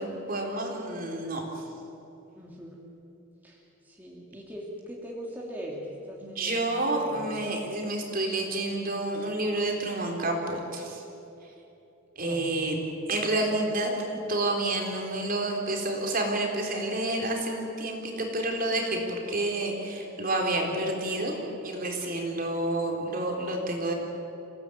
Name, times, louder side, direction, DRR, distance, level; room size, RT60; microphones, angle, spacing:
voice 1, 0.0-1.5 6.2-11.0 12.2-12.8 13.1-14.0 14.3-23.9, right 2 dB, 40° right, 1 dB, 4.0 m, -29 dB
voice 2, 2.4-2.8 3.4-7.3 12.2-12.5, equal, 10° right, -3 dB, 2.8 m, -41 dB
28.5 x 18.0 x 9.3 m, 2.9 s
head